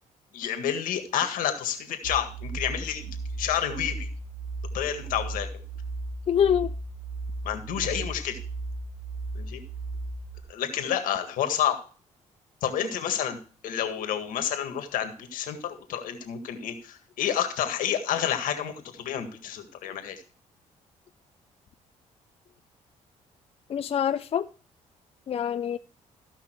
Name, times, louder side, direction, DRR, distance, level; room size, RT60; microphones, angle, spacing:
voice 1, 0.3-4.1 4.7-5.5 7.4-8.4 9.4-9.6 10.5-11.8 12.6-20.2, left 9 dB, 80° left, 1.8 m, -29 dB
sound 1, 2.0-10.4, right 2 dB, 80° right, 2.9 m, -36 dB
voice 2, 6.3-6.7 23.7-24.5 25.3-25.8, left 8 dB, 45° left, 0.5 m, -25 dB
15.0 x 5.6 x 4.5 m
cardioid pair, 80°, 14 cm